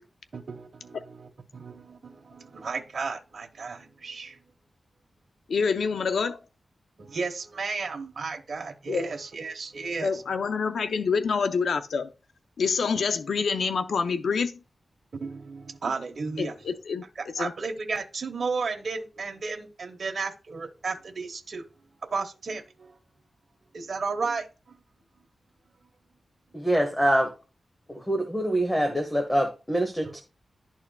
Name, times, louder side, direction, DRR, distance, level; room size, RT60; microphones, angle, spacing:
voice 1, 0.3-4.4 7.0-10.2 12.9-13.0 15.2-16.5 17.2-21.7 22.1-23.0 23.7-24.8 27.9-28.0 30.0-30.1, right 4 dB, 60° right, 1.0 m, -34 dB
voice 2, 5.5-6.4 8.9-9.1 10.0-12.1 12.6-14.6 16.4-17.0 17.4-17.5, left 5 dB, 85° left, 0.5 m, -26 dB
voice 3, 26.5-27.3 27.9-30.2, right 1 dB, 5° left, 1.1 m, -25 dB
12.0 x 4.4 x 2.3 m
wide cardioid pair, 95°, 0 cm